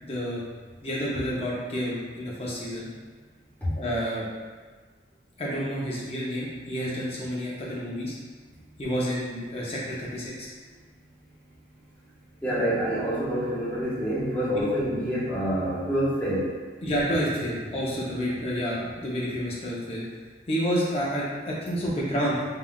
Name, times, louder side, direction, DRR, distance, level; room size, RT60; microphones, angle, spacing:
voice 1, 0.0-0.4 0.8-2.9 3.8-4.3 5.4-8.2 8.8-10.5 14.6-14.7 16.8-20.0 20.5-22.4, equal, 35° left, -6 dB, 0.6 m, -29 dB
voice 2, 12.4-16.5, equal, 10° left, -11 dB, 0.9 m, -27 dB
3.6 x 2.3 x 2.3 m, 1.5 s
head